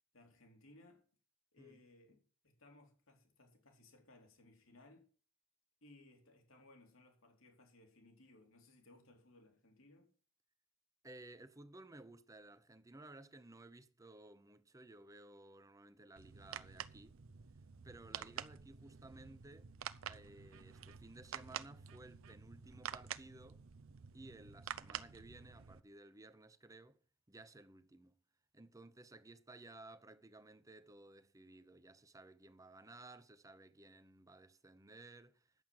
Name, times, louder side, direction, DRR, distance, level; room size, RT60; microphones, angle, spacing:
voice 1, 0.1-1.0 1.5-5.1 5.8-10.1, left 2 dB, 80° left, 3.0 m, -63 dB
voice 2, 11.0-17.2 17.8-19.7 20.1-23.6 24.1-27.0 27.3-28.2 28.5-35.5, right 2 dB, 15° right, 0.7 m, -57 dB
sound 1, 16.2-25.8, right 8 dB, 80° right, 0.6 m, -49 dB
10.5 x 7.4 x 7.6 m
head